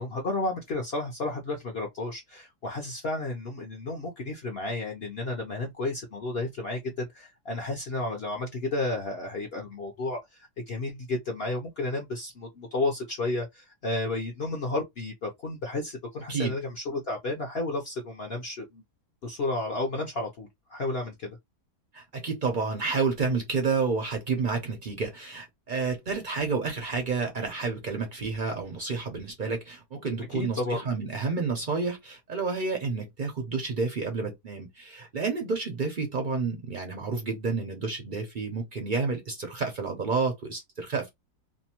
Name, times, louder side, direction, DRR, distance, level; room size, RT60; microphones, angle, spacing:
voice 1, 0.0-18.8 19.2-21.4 30.3-30.8, left 2 dB, 60° left, 0.6 m, -32 dB
voice 2, 21.9-41.1, right 4 dB, 65° right, 0.5 m, -30 dB
2.7 x 2.1 x 2.8 m
omnidirectional pair, 1.7 m